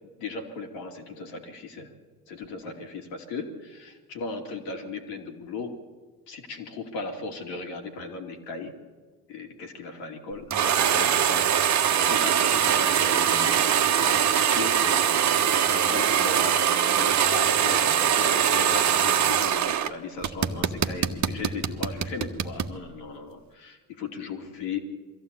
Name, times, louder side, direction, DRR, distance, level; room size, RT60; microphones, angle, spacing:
voice 1, 0.2-1.9 2.3-5.8 6.3-8.7 9.3-13.7 14.0-15.1 15.7-24.8, left 4 dB, 65° left, 2 dB, 3.0 m, -37 dB
sound 1, 10.5-19.9 20.2-22.7, right 9 dB, 40° right, 1.4 m, -22 dB
23.0 x 15.0 x 8.5 m, 1.4 s
hypercardioid pair, 60°, 45 cm